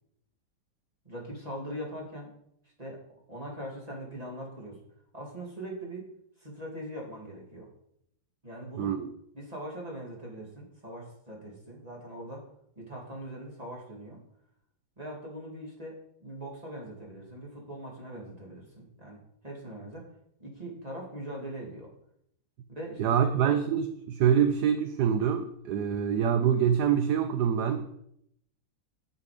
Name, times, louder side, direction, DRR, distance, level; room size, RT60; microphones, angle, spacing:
voice 1, 1.0-2.3 2.8-3.0 3.3-4.8 5.1-6.1 6.4-7.7 8.4-8.9 9.3-12.4 12.8-14.2 15.0-20.1 20.4-21.9 22.7-23.5, right 1 dB, 20° right, -2 dB, 2.8 m, -41 dB
voice 2, 8.8-9.1 23.0-27.9, right 8 dB, 70° right, 9 dB, 1.1 m, -25 dB
9.9 x 6.7 x 5.1 m, 0.74 s
omnidirectional pair, 2.0 m